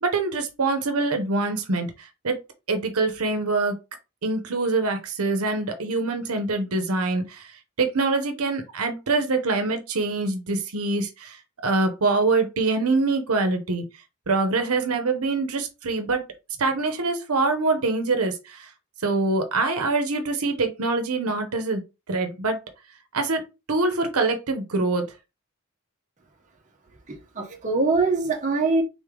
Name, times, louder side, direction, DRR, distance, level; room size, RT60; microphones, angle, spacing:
voice 1, 0.0-2.4 2.7-3.7 4.2-7.5 7.8-11.4 11.6-13.8 14.3-16.2 16.6-18.7 19.0-21.8 22.1-22.6 23.1-23.4 23.7-25.0, right 3 dB, 80° right, 0.9 m, -24 dB
voice 2, 27.1-28.8, right 3 dB, 35° right, 1.0 m, -23 dB
3.8 x 3.3 x 3.8 m
head